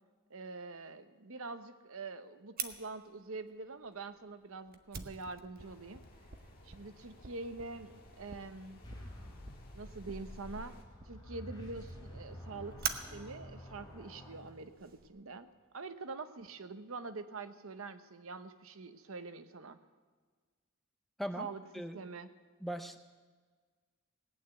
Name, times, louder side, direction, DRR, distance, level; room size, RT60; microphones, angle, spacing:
voice 1, 0.3-6.0 6.6-8.8 9.7-10.8 11.0-15.5 15.7-19.8 21.4-21.6 21.9-22.3, right 3 dB, 70° right, 10 dB, 0.9 m, -45 dB
Fire, 2.6-15.1, right 7 dB, 40° right, 0.9 m, -47 dB
sound 1, 5.6-10.8, left 1 dB, 40° left, 1.8 m, -58 dB
sound 2, 8.8-15.0, equal, 20° left, 3.4 m, -49 dB
voice 2, 22.6-23.0, equal, ahead, 7 dB, 0.5 m, -39 dB
18.5 x 9.1 x 8.0 m, 1.5 s
head